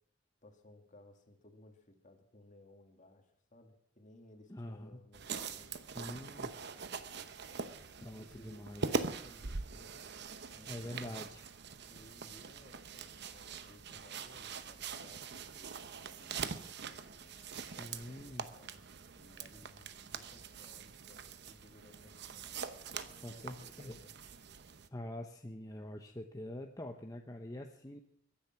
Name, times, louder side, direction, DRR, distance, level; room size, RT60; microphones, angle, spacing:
voice 1, 0.4-7.7 8.2-11.2 11.8-17.4 17.8-18.8 19.2-24.1, left 1 dB, 40° left, 4 dB, 2.3 m, -61 dB
voice 2, 4.5-5.0 5.9-6.6 8.0-9.0 10.7-11.4 17.3-18.5 23.2-24.0 24.9-28.0, left 1 dB, 20° left, 3 dB, 1.0 m, -45 dB
sound 1, 5.1-24.9, right 5 dB, 60° right, 0.9 m, -43 dB
23.0 x 10.0 x 6.0 m, 0.70 s
head